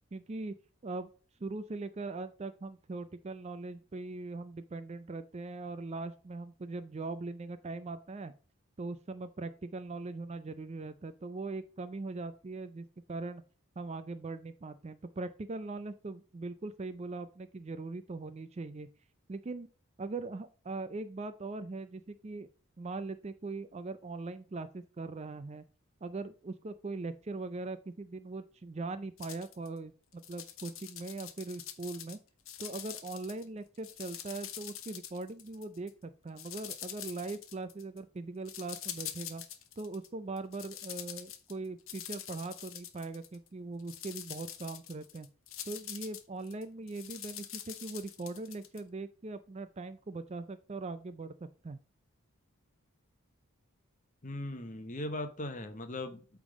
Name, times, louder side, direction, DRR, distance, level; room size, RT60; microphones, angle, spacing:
voice 1, 0.1-0.5 0.8-1.1 1.4-8.3 8.8-13.4 13.8-18.9 19.3-19.7 20.0-22.5 22.8-25.6 26.0-32.2 32.6-39.4 39.8-45.3 45.7-51.3 51.6-51.8, right 3 dB, 30° right, 12 dB, 0.4 m, -40 dB
sound 1, 29.2-29.7 30.1-32.2 32.5-33.4 33.7-35.9 36.4-38.0 38.4-40.1 40.4-43.5 43.8-48.8, left 11 dB, 65° left, 0.9 m, -45 dB
voice 2, 54.2-56.4, left 1 dB, 35° left, 8 dB, 0.8 m, -39 dB
8.4 x 3.5 x 5.1 m, 0.38 s
head